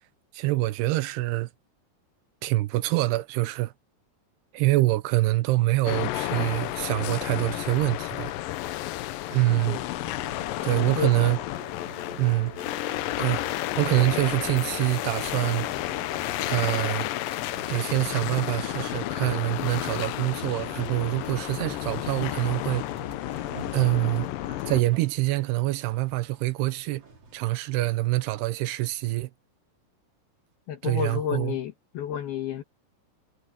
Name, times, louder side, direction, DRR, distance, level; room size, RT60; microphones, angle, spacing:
voice 1, 0.3-1.5 2.4-3.7 4.5-8.3 9.3-9.8 10.6-11.4 12.2-12.5 13.2-13.4 13.8-15.7 16.5-17.1 17.7-22.8 23.7-24.3 24.7-27.0 27.3-29.3 30.8-31.5, right 18 dB, 80° right, 2.6 m, -25 dB
sound 1, 5.9-24.8, left 16 dB, 90° left, 2.0 m, -32 dB
voice 2, 9.6-10.1 10.5-11.1 14.1-14.2 15.9-16.0 30.7-32.6, left 9 dB, 70° left, 3.3 m, -32 dB
sound 2, 10.0-27.9, right 3 dB, 40° right, 5.9 m, -46 dB
omnidirectional pair, 4.9 m